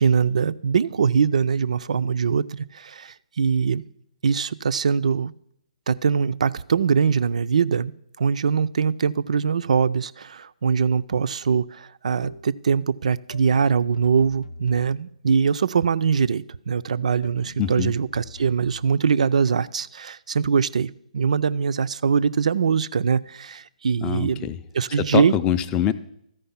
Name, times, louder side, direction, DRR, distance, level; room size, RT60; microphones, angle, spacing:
voice 1, 0.0-3.8 4.2-5.3 5.9-7.9 8.2-24.5 24.7-25.3, right 6 dB, 60° right, 16 dB, 0.3 m, -22 dB
sound 1, 12.2-12.6 13.3-15.2 16.1-16.6 17.2-18.9, left 2 dB, 65° left, 0.6 m, -43 dB
voice 2, 17.6-17.9 24.0-24.6 24.9-25.9, left 10 dB, 20° left, 12 dB, 0.4 m, -24 dB
13.5 x 5.1 x 5.6 m, 0.75 s
figure-of-eight pair, 135°, 4 cm